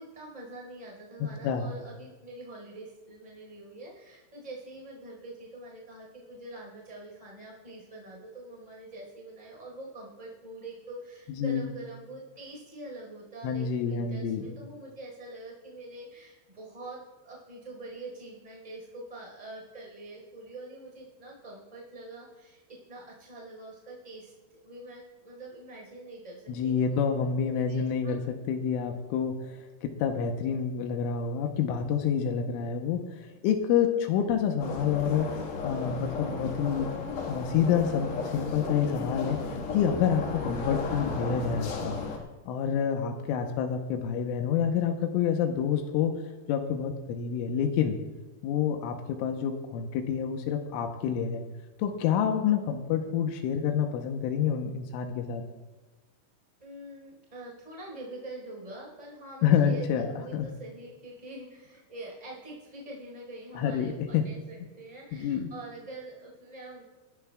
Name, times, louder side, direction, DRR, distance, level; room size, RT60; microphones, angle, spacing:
voice 1, 0.0-27.0 27.4-28.1 56.6-66.8, right 2 dB, 10° right, -3 dB, 4.0 m, -45 dB
voice 2, 11.3-11.7 13.4-14.5 26.5-28.2 28.5-29.5 29.8-33.0 33.4-35.3 35.6-36.9 37.3-42.0 42.5-46.2 46.5-48.0 48.4-51.4 51.8-55.4 59.4-60.1 60.3-60.5 63.6-64.2 65.1-65.5, left 7 dB, 85° left, 4 dB, 3.4 m, -28 dB
sound 1, 34.6-42.2, left 4 dB, 70° left, 3.7 m, -34 dB
28.5 x 12.0 x 2.4 m, 1.2 s
omnidirectional pair, 5.6 m